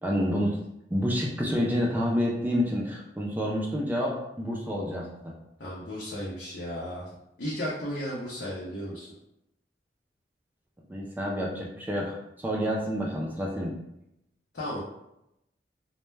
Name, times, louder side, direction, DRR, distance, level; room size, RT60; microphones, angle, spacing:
voice 1, 0.0-0.6 0.9-5.3 10.9-13.7, equal, 10° right, -2 dB, 0.3 m, -28 dB
voice 2, 5.6-7.1 7.4-9.1 14.5-14.8, equal, 70° left, -6 dB, 0.6 m, -34 dB
2.1 x 2.1 x 3.2 m, 0.83 s
head